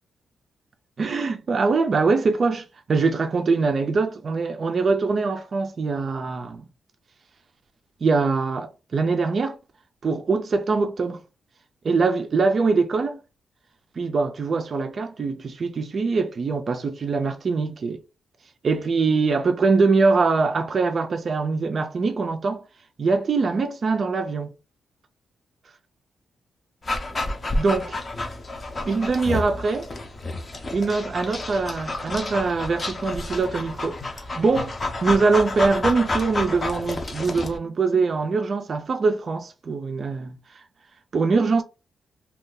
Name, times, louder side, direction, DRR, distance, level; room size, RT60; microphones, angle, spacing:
voice 1, 1.0-6.6 8.0-9.6 10.0-11.2 11.8-13.2 14.0-18.0 18.6-22.6 23.0-24.5 27.5-28.0 28.8-29.9 30.7-34.7 35.0-40.6 41.1-41.6, right 4 dB, 40° right, 0.4 m, -23 dB
Dog, 26.8-37.6, left 2 dB, 30° left, 0.6 m, -30 dB
2.6 x 2.3 x 3.7 m
wide cardioid pair, 140°, 0 cm